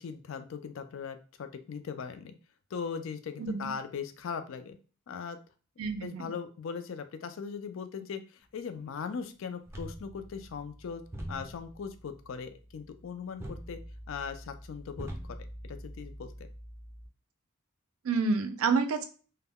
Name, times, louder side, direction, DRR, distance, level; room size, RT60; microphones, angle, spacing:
voice 1, 0.0-2.3 2.7-4.8 5.1-5.4 6.0-11.0 11.3-13.8 14.1-15.4 15.6-16.5, left 6 dB, 65° left, 9 dB, 0.4 m, -39 dB
voice 2, 3.4-3.7 5.8-6.2 18.0-19.0, right 4 dB, 80° right, 8 dB, 0.4 m, -28 dB
sound 1, 9.7-17.1, equal, 10° right, 0.5 m, -45 dB
2.1 x 2.1 x 3.5 m, 0.37 s
head